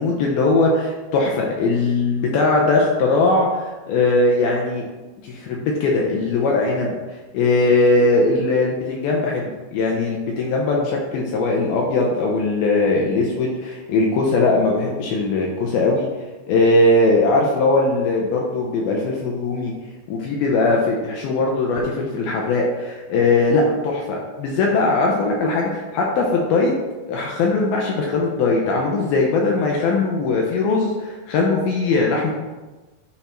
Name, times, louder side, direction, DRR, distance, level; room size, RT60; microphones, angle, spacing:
voice 1, 0.0-4.8 5.2-7.0 7.3-16.1 16.5-19.7 20.1-26.7 27.1-32.3, left 3 dB, 75° left, -1 dB, 2.3 m, -20 dB
10.0 x 3.5 x 4.4 m, 1.2 s
omnidirectional pair, 5.0 m